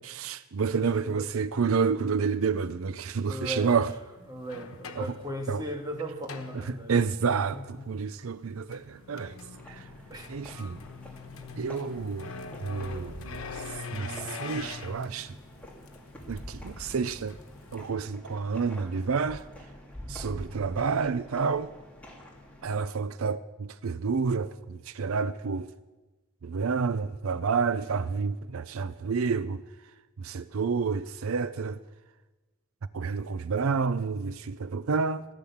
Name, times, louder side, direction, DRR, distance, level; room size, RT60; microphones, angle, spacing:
voice 1, 0.0-3.9 5.0-5.1 5.5-5.6 6.5-9.4 9.7-9.9 10.3-10.8 11.6-12.3 12.6-13.6 13.9-15.3 16.3-17.4 17.7-19.4 20.1-21.7 22.6-25.7 26.4-29.6 30.2-31.8 32.9-35.2, right 5 dB, 85° right, 0.5 m, -29 dB
voice 2, 0.7-1.3 3.3-3.8 4.3-7.0 7.5-7.9 10.1-10.3, equal, 20° right, 1.8 m, -37 dB
sound 1, 3.7-3.8 4.3-7.2 8.5-17.9, left 4 dB, 90° left, 1.2 m, -43 dB
sound 2, 9.5-22.8, left 1 dB, 5° left, 2.4 m, -46 dB
17.0 x 10.0 x 7.2 m
head